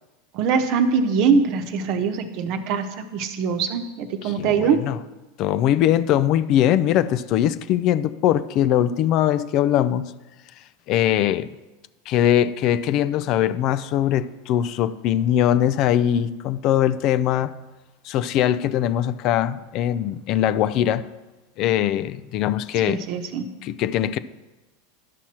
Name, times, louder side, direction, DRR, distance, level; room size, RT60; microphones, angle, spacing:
voice 1, 0.3-4.8 22.8-23.5, right 6 dB, 55° right, 1.0 m, -22 dB
voice 2, 4.2-5.0 5.4-10.1 10.9-11.5 12.1-17.5 18.0-21.1 21.6-23.0 23.6-24.2, left 11 dB, 50° left, 0.4 m, -21 dB
11.5 x 6.1 x 4.3 m
supercardioid pair, 115°, 0 cm